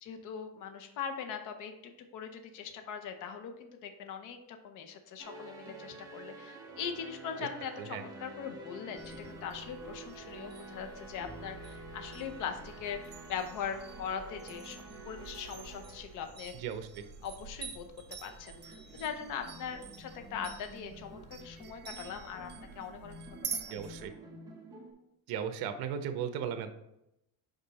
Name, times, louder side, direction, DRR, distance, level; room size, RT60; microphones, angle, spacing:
voice 1, 0.0-16.5 17.2-17.8 18.2-22.5 22.8-23.8, left 7 dB, 55° left, 6 dB, 0.8 m, -41 dB
sound 1, 5.2-16.8 18.2-24.9, right 2 dB, 10° right, 1.0 m, -49 dB
sound 2, 9.0-24.0, right 6 dB, 30° right, 0.6 m, -47 dB
voice 2, 16.5-17.0 23.7-24.1 25.3-26.7, right 8 dB, 70° right, 9 dB, 0.8 m, -36 dB
5.3 x 5.2 x 4.1 m, 0.85 s
cardioid pair, 170°, 38 cm